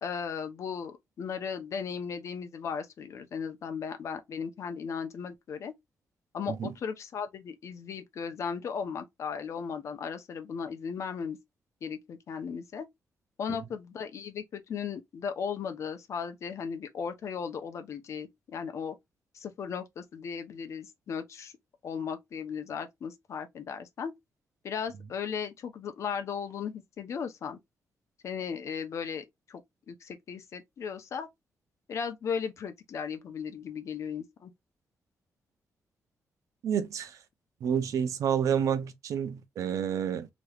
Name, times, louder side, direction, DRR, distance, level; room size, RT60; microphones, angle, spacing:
voice 1, 0.0-5.7 6.3-11.4 11.8-12.9 13.4-19.0 19.3-21.5 21.8-24.1 24.6-27.6 28.2-29.6 29.9-31.3 31.9-34.5, left 6 dB, 65° left, 0.7 m, -36 dB
voice 2, 36.6-37.2 37.6-40.3, right 8 dB, 75° right, 0.6 m, -29 dB
3.3 x 3.0 x 2.3 m
cardioid pair, 95°, 5 cm